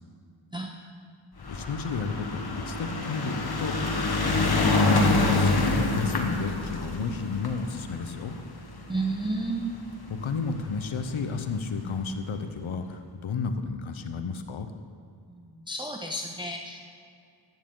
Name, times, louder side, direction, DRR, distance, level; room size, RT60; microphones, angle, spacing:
sound 1, 1.4-9.9 10.7-10.8 11.0-11.1 11.3-11.4, left 2 dB, 50° left, 1.3 m, -26 dB
voice 1, 1.5-8.4 10.1-14.7, left 5 dB, 80° left, 8 dB, 0.9 m, -32 dB
voice 2, 8.9-9.7 15.3-16.9, right 2 dB, 10° right, 2 dB, 0.7 m, -32 dB
12.5 x 9.3 x 3.8 m, 2.4 s
cardioid pair, 55°, 48 cm